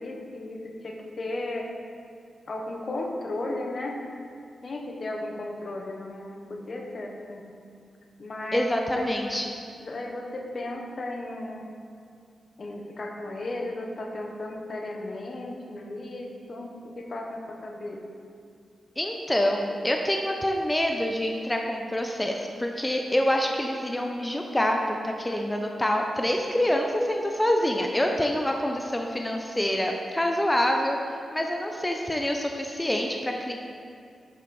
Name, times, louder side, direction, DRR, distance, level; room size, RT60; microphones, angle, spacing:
voice 1, 0.0-1.7 2.5-4.0 4.6-7.4 8.2-9.4 9.8-11.7 12.6-18.0, left 2 dB, 55° left, 1 dB, 1.1 m, -35 dB
voice 2, 8.5-9.5 19.0-33.5, left 1 dB, 15° left, 2 dB, 0.7 m, -26 dB
11.0 x 5.1 x 4.3 m, 2.3 s
cardioid pair, 60°, 0 cm